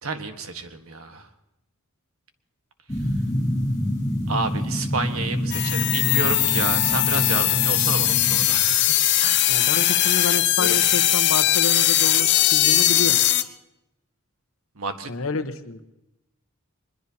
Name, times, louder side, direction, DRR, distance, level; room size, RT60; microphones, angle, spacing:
voice 1, 0.0-1.3 4.3-8.9 9.2-9.6 10.6-10.7 14.8-15.1, right 4 dB, 90° right, 7 dB, 1.4 m, -30 dB
sound 1, 2.9-8.5, equal, 15° left, 7.1 m, -27 dB
sound 2, 5.5-13.4, left 13 dB, 55° left, 0.7 m, -20 dB
voice 2, 9.5-13.2 15.1-15.8, left 3 dB, 80° left, 7 dB, 1.0 m, -29 dB
23.0 x 21.0 x 2.8 m, 0.91 s
head